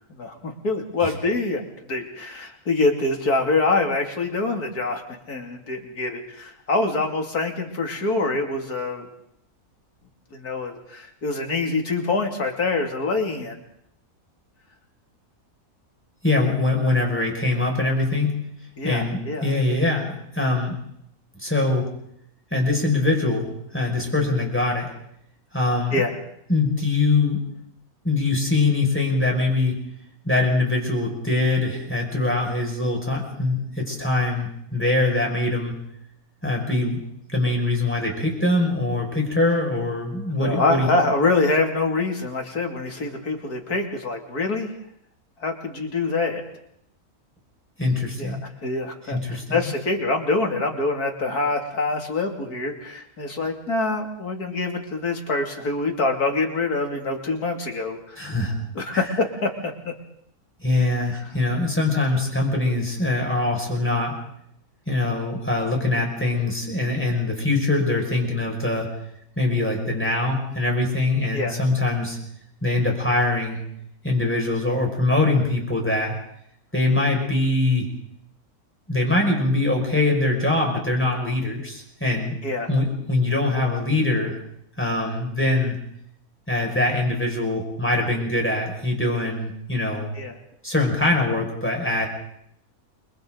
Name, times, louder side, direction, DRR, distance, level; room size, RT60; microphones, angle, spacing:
voice 1, 0.0-1.6 1.9-5.0 5.3-9.1 10.3-13.6 18.8-19.6 25.9-26.2 40.4-44.7 45.4-46.4 48.2-48.4 48.6-58.3 58.7-59.9 71.3-71.6 82.4-82.7 90.2-90.3, left 3 dB, 80° left, 2 dB, 3.2 m, -25 dB
voice 2, 16.2-18.4 18.8-20.8 21.4-21.9 22.5-24.9 25.5-26.0 26.5-27.4 28.0-29.8 30.2-35.7 36.4-37.0 37.3-40.9 47.8-48.4 49.0-49.7 58.2-58.6 58.9-59.1 60.6-64.2 64.9-68.9 69.4-72.2 72.6-73.6 74.0-76.2 76.7-77.9 78.9-82.4 82.7-84.4 84.8-85.8 86.5-90.1 90.6-92.1, left 2 dB, 5° left, -1 dB, 5.8 m, -23 dB
29.5 x 24.0 x 4.0 m, 0.74 s
omnidirectional pair, 1.6 m